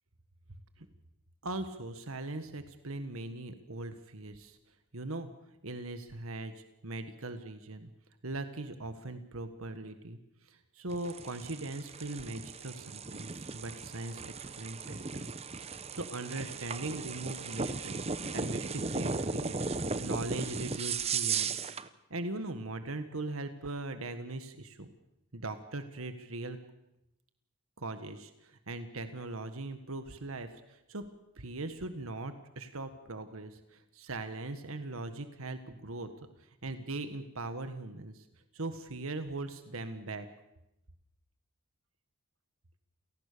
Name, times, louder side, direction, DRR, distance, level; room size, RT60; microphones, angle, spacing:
voice 1, 1.4-4.6 4.9-5.3 5.6-7.9 8.2-10.2 10.5-15.3 15.6-18.0 18.3-21.5 22.1-24.9 25.3-26.6 27.8-31.1 31.4-36.1 36.4-38.2 38.5-40.2, right 2 dB, 85° right, 9 dB, 1.7 m, -40 dB
sound 1, 10.9-21.9, right 4 dB, 30° right, 0.9 m, -36 dB
28.0 x 18.5 x 6.9 m, 0.88 s
head